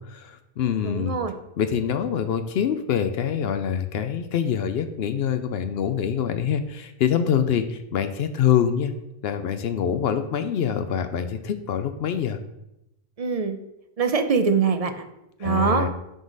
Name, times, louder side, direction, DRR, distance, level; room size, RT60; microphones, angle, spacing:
voice 1, 0.0-1.2 1.6-8.9 9.2-12.4 15.4-15.9, left 8 dB, 70° left, 9 dB, 0.8 m, -25 dB
voice 2, 0.8-1.3 13.2-13.6 14.0-14.9 15.4-15.9, right 5 dB, 40° right, 8 dB, 0.6 m, -23 dB
11.0 x 3.9 x 3.9 m, 0.88 s
omnidirectional pair, 1.1 m